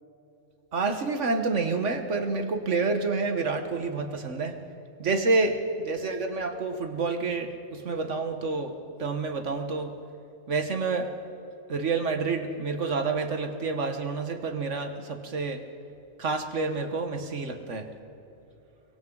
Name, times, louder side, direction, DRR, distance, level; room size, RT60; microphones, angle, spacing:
voice 1, 0.7-4.6 5.0-9.9 10.5-11.1 11.7-15.6 16.2-17.9, right 3 dB, 65° right, 6 dB, 1.7 m, -28 dB
30.0 x 23.5 x 4.0 m, 2.9 s
omnidirectional pair, 1.4 m